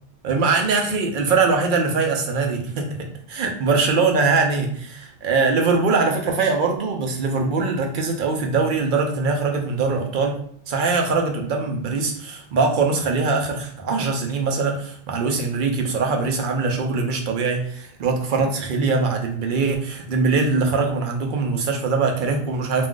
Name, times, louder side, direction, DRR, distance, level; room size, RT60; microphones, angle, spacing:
voice 1, 0.2-3.0 3.3-10.4 10.7-22.9, right 4 dB, 60° right, 2 dB, 0.7 m, -22 dB
2.4 x 2.3 x 3.6 m, 0.64 s
omnidirectional pair, 1.0 m